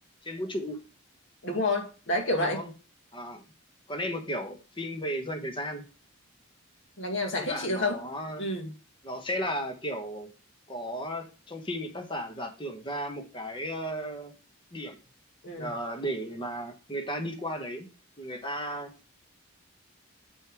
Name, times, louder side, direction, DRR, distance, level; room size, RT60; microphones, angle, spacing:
voice 1, 0.2-0.8 2.4-2.7 3.1-3.4 3.9-5.8 7.4-8.5 9.0-10.3 10.7-14.3 14.7-15.0 15.6-17.9 18.2-18.9, equal, 25° left, 1.3 m, -34 dB
voice 2, 1.4-2.6 7.0-8.0 8.4-8.7 15.4-15.7, left 2 dB, 60° left, 2.0 m, -29 dB
7.4 x 5.3 x 4.7 m
head